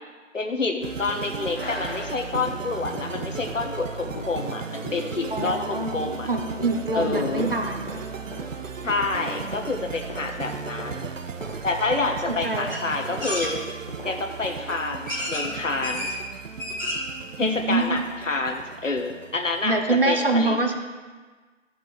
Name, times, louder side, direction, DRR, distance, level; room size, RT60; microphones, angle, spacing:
voice 1, 0.3-6.3 6.9-7.5 8.8-11.1 11.6-13.6 14.0-16.2 17.4-19.8 20.1-20.6, left 3 dB, 70° left, 4 dB, 1.2 m, -28 dB
sound 1, 0.8-20.1, right 6 dB, 80° right, 0.6 m, -36 dB
sound 2, 1.4-14.6, left 2 dB, 50° left, 1.0 m, -39 dB
voice 2, 5.3-5.9 6.3-7.8 12.2-12.8 17.4-18.0 19.6-20.8, right 2 dB, 45° right, 4 dB, 0.8 m, -25 dB
sound 3, 12.7-12.8 13.2-13.5 14.4-14.5 15.1-15.5 15.8-16.1 16.5-17.1 17.5-17.6 17.8-17.9, left 1 dB, 15° left, 1.8 m, -30 dB
14.0 x 5.2 x 3.2 m, 1.4 s
figure-of-eight pair, 180°, 39 cm